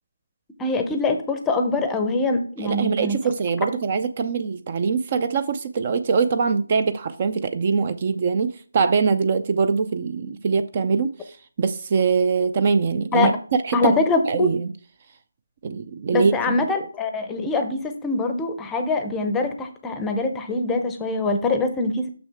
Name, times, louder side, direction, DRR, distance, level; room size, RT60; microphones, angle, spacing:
voice 1, 0.6-3.2 13.1-13.3 13.7-14.5 16.1-22.1, left 3 dB, 10° left, 0.7 m, -23 dB
voice 2, 2.6-13.3 13.6-13.9 14.3-14.7 15.6-16.6, right 5 dB, 35° right, 0.4 m, -23 dB
6.4 x 6.1 x 3.4 m
figure-of-eight pair, 165°, 0 cm